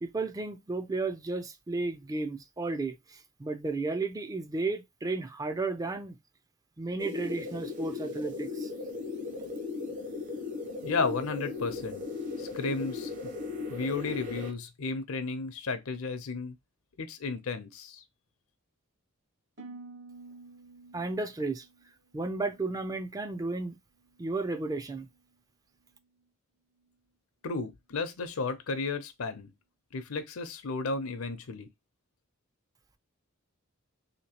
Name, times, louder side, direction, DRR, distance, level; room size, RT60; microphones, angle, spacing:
voice 1, 0.0-6.2 6.8-8.7 20.9-21.7 22.1-23.8 24.2-25.1, right 3 dB, 15° right, 0.3 m, -33 dB
sound 1, 7.0-14.5, left 4 dB, 40° right, 0.8 m, -37 dB
voice 2, 10.8-12.0 12.4-13.3 13.7-16.5 17.0-18.0 27.4-29.5 29.9-31.7, left 4 dB, 85° left, 0.6 m, -33 dB
Harp, 19.6-23.7 24.0-24.5 25.0-25.4, right 3 dB, 55° right, 1.1 m, -52 dB
3.5 x 2.9 x 2.8 m
head